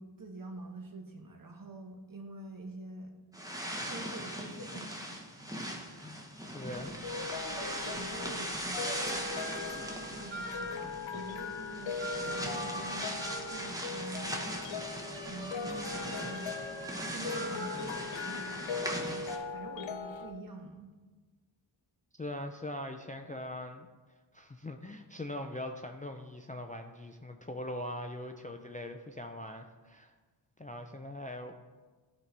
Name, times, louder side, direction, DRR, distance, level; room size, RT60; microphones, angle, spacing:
voice 1, 0.0-3.1 3.8-4.9 5.6-5.9 6.7-9.3 10.1-14.4 15.2-16.7 17.1-20.9, right 2 dB, 45° right, 4 dB, 1.0 m, -46 dB
sound 1, 3.3-19.4, equal, 10° right, 0.9 m, -40 dB
voice 2, 6.5-6.9 17.7-18.0 22.2-23.9 24.3-30.1 30.6-31.5, left 1 dB, 20° left, 5 dB, 0.4 m, -41 dB
sound 2, 6.8-20.3, left 5 dB, 80° left, 0.5 m, -40 dB
sound 3, 10.3-11.0 12.0-13.8 14.8-18.0, equal, 70° right, 2.4 m, -43 dB
12.0 x 4.0 x 3.3 m, 1.3 s
wide cardioid pair, 60°, 46 cm